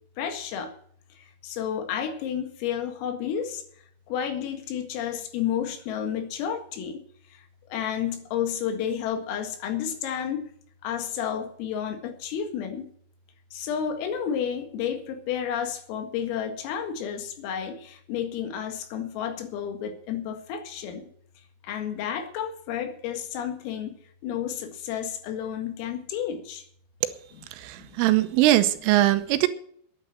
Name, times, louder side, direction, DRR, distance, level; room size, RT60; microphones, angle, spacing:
voice 1, 0.2-0.7 1.2-3.6 4.1-7.0 7.3-7.4 7.7-10.5 10.8-12.9 13.5-21.1 21.6-24.0 24.2-26.6 27.3-27.4 27.8-27.9, left 8 dB, 85° left, 6 dB, 4.6 m, -31 dB
voice 2, 27.6-29.5, right 15 dB, 85° right, 11 dB, 3.3 m, -21 dB
11.5 x 10.0 x 7.6 m, 0.62 s
omnidirectional pair, 5.9 m